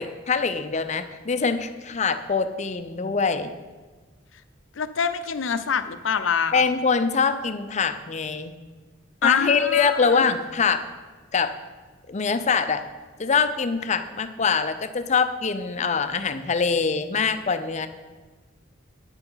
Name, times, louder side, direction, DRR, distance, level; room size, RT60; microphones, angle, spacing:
voice 1, 0.0-3.5 6.5-8.5 9.2-10.8 11.3-11.5 12.1-12.8 13.2-17.9, left 5 dB, 40° left, 10 dB, 0.6 m, -24 dB
voice 2, 4.8-6.6 9.2-10.3, left 6 dB, 85° left, 11 dB, 0.6 m, -25 dB
9.7 x 6.9 x 5.6 m, 1.3 s
head